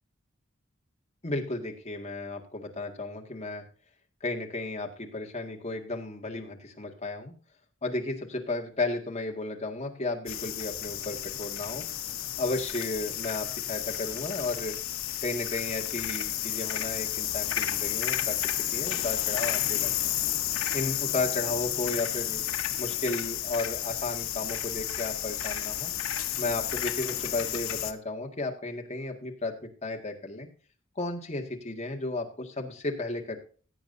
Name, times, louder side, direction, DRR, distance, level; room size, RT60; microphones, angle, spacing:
voice 1, 1.2-3.6 4.2-7.3 7.8-11.8 12.4-14.8 15.2-18.4 18.7-20.1 20.7-22.4 22.8-25.9 26.4-30.5 31.0-33.4, left 2 dB, 30° left, 2 dB, 1.9 m, -34 dB
sound 1, 10.3-27.9, left 12 dB, 85° left, 1.0 m, -32 dB
16.5 x 8.5 x 2.6 m, 0.40 s
head